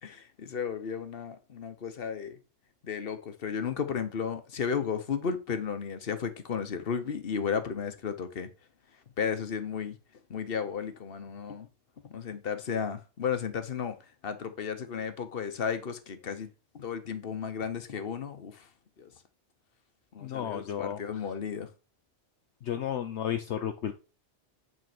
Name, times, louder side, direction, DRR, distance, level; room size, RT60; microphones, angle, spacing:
voice 1, 0.0-2.4 2.8-8.5 9.2-10.0 10.3-11.7 12.0-14.0 14.2-16.5 16.7-18.6 19.0-19.1 20.1-21.7, left 6 dB, 50° left, 1.2 m, -34 dB
voice 2, 20.2-21.2 22.6-23.9, left 9 dB, 70° left, 1.0 m, -33 dB
9.4 x 4.0 x 6.0 m
omnidirectional pair, 1.3 m